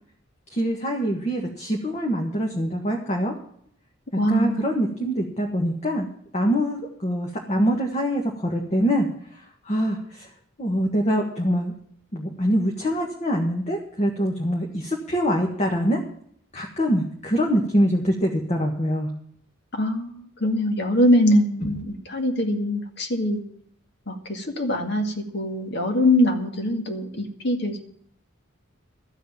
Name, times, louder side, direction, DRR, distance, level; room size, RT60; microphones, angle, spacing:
voice 1, 0.5-3.3 4.1-6.1 6.3-10.3 10.6-11.7 12.1-16.0 16.5-19.1, equal, 35° left, 1 dB, 1.5 m, -24 dB
voice 2, 4.2-4.6 19.7-23.4 24.1-27.8, left 1 dB, 55° left, 4 dB, 2.2 m, -23 dB
13.5 x 6.6 x 9.3 m, 0.65 s
head